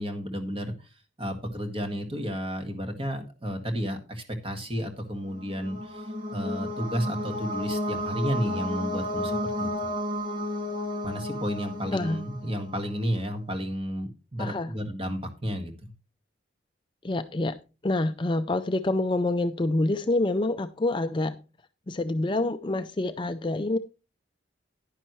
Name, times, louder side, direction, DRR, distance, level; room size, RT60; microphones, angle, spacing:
voice 1, 0.0-9.7 11.0-15.9, equal, 30° right, 5 dB, 1.8 m, -32 dB
sound 1, 5.2-12.9, left 1 dB, 45° right, 2.4 m, -32 dB
voice 2, 11.9-12.2 14.4-14.7 17.0-17.5 17.8-21.4 21.9-23.8, left 2 dB, 25° left, 9 dB, 0.4 m, -27 dB
11.0 x 9.9 x 3.1 m, 0.31 s
head